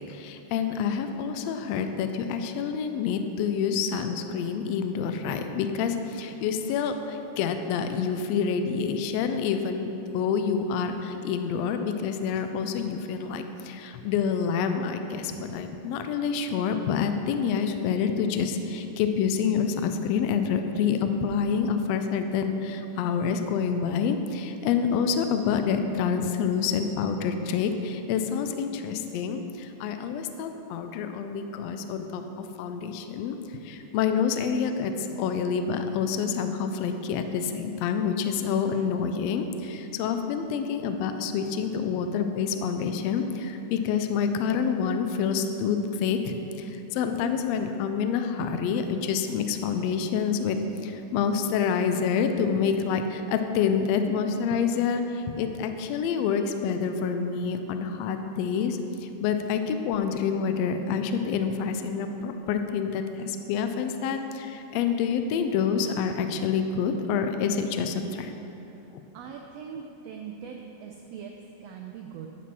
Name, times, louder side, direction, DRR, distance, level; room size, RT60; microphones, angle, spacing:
voice 1, 0.0-32.2 32.6-33.4 33.6-58.8 59.2-68.3, left 6 dB, 80° left, 7 dB, 1.5 m, -27 dB
voice 2, 69.1-72.3, right 7 dB, 90° right, 2 dB, 1.4 m, -41 dB
10.0 x 5.9 x 4.7 m, 2.9 s
omnidirectional pair, 3.5 m